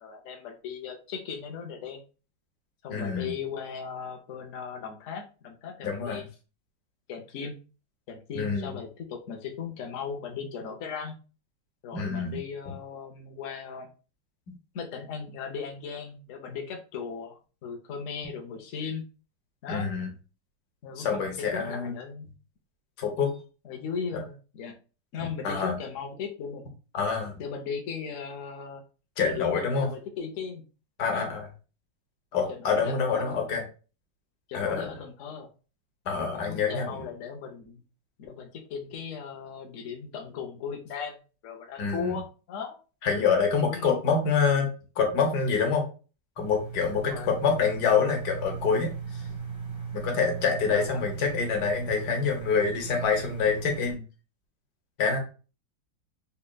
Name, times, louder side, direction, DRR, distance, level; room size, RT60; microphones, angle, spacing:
voice 1, 0.0-2.0 2.8-6.2 7.1-7.5 8.1-11.2 11.8-13.9 14.7-19.0 19.6-19.9 20.8-22.3 23.6-24.7 25.1-26.6 27.4-28.8 29.2-30.6 31.1-31.3 32.5-33.4 34.5-35.5 36.1-37.8 38.2-42.8 43.6-44.0 46.8-47.3 50.1-50.3 50.7-51.1 55.1-55.2, left 6 dB, 90° left, 2 dB, 0.6 m, -37 dB
voice 2, 2.9-3.3 5.8-6.2 8.3-8.8 11.9-12.4 12.7-12.8 19.7-20.1 21.0-21.9 23.0-23.3 24.1-24.2 25.4-25.7 26.9-27.4 29.2-29.9 31.0-31.5 32.3-33.6 34.5-35.0 36.1-37.0 41.8-42.2 43.0-44.7 45.0-45.8 46.4-49.4 49.9-54.0 55.0-55.2, left 5 dB, 60° left, 2 dB, 1.4 m, -26 dB
sound 1, 46.4-53.9, right 6 dB, 20° right, 0.7 m, -37 dB
4.1 x 3.3 x 2.3 m, 0.35 s
omnidirectional pair, 2.2 m